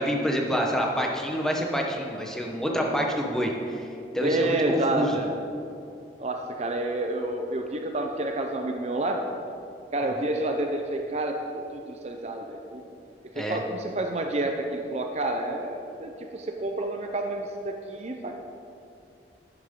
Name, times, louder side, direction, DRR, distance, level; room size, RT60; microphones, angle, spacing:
voice 1, 0.0-3.9 4.1-5.2 13.3-13.6, equal, 5° left, 0 dB, 1.0 m, -27 dB
voice 2, 4.2-5.3 6.2-9.2 9.9-12.8 13.3-18.3, right 2 dB, 35° right, 3 dB, 0.6 m, -29 dB
11.5 x 10.5 x 3.7 m, 2.6 s
head